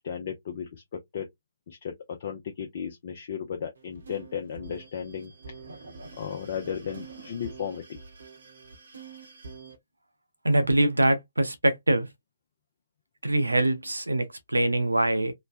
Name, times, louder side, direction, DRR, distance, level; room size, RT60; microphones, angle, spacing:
voice 1, 0.0-1.3 1.7-5.3 6.2-8.0, left 7 dB, 50° left, 0.5 m, -35 dB
sound 1, 3.7-9.8, right 4 dB, 65° right, 0.9 m, -46 dB
voice 2, 10.4-12.1 13.2-14.3 14.5-15.3, right 1 dB, 80° right, 0.6 m, -23 dB
3.1 x 2.2 x 2.4 m
figure-of-eight pair, 130°, 0 cm